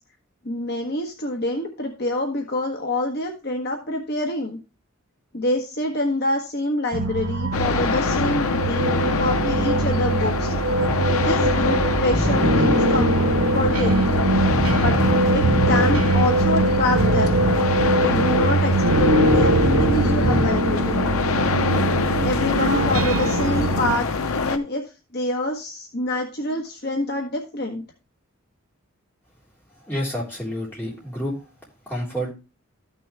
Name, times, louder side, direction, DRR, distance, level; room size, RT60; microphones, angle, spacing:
voice 1, 0.4-4.6 5.3-10.5 11.1-13.1 13.5-14.1 14.7-15.0 15.3-17.5 18.0-21.1 22.2-27.8, left 1 dB, 50° left, 2 dB, 1.3 m, -26 dB
sound 1, 6.9-23.9, right 2 dB, 85° right, 1.2 m, -22 dB
sound 2, 7.5-24.6, left 4 dB, 80° left, 0.7 m, -25 dB
sound 3, 10.9-11.5 12.0-15.2 15.4-16.3 16.8-20.0 20.2-20.5, right 2 dB, 25° left, 1.2 m, -26 dB
voice 2, 29.8-31.4 31.9-32.3, equal, 10° left, -5 dB, 3.7 m, -29 dB
13.5 x 6.2 x 3.3 m, 0.30 s
head